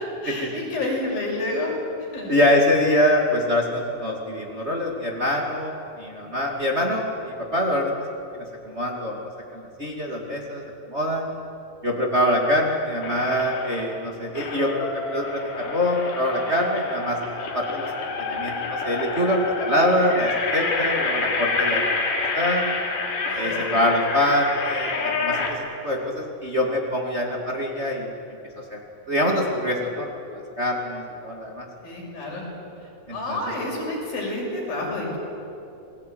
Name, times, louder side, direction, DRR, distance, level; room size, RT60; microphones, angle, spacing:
voice 1, 0.2-1.7 2.1-2.3 23.3-23.8 31.8-32.5 33.1-35.2, left 2 dB, 85° left, -2 dB, 8.3 m, -29 dB
voice 2, 2.3-7.9 8.3-10.6 10.9-11.3 11.8-17.2 17.5-17.9 18.2-22.7 23.4-28.1 28.7-28.8 29.1-31.7 33.1-33.4, left 1 dB, 20° right, 0 dB, 2.4 m, -24 dB
sound 1, 13.0-13.9 14.4-25.5, left 4 dB, 65° left, 4.5 m, -28 dB
29.0 x 20.5 x 9.4 m, 2.7 s
omnidirectional pair, 4.0 m